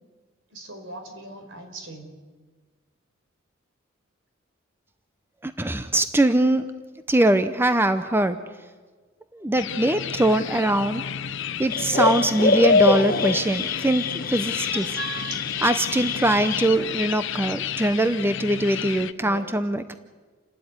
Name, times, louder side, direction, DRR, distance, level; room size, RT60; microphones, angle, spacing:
voice 1, 0.5-2.1 14.7-15.5 19.2-19.5, right 3 dB, 65° right, 4 dB, 4.8 m, -38 dB
voice 2, 5.4-6.7 7.1-8.4 9.3-11.0 11.6-14.9 15.6-19.9, right 1 dB, 10° right, 10 dB, 0.7 m, -22 dB
sound 1, 9.5-19.1, left 8 dB, 65° left, 0.8 m, -33 dB
sound 2, 11.7-16.7, left 3 dB, 45° left, 1.2 m, -24 dB
29.0 x 12.5 x 9.6 m, 1.4 s
head